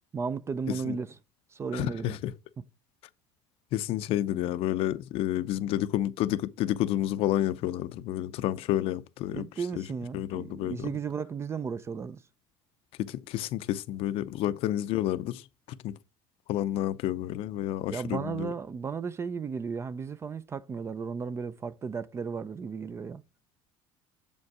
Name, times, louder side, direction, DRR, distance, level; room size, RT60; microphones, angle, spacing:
voice 1, 0.1-1.2 1.5-2.2 2.6-2.7 9.3-12.2 17.9-23.2, right 5 dB, 25° right, 0.4 m, -34 dB
voice 2, 1.7-2.3 3.7-9.4 9.8-9.9 10.1-10.9 13.0-15.4 15.8-15.9 16.5-18.5, left 13 dB, 60° left, 0.6 m, -30 dB
7.1 x 5.2 x 4.8 m
cardioid pair, 125°, 11 cm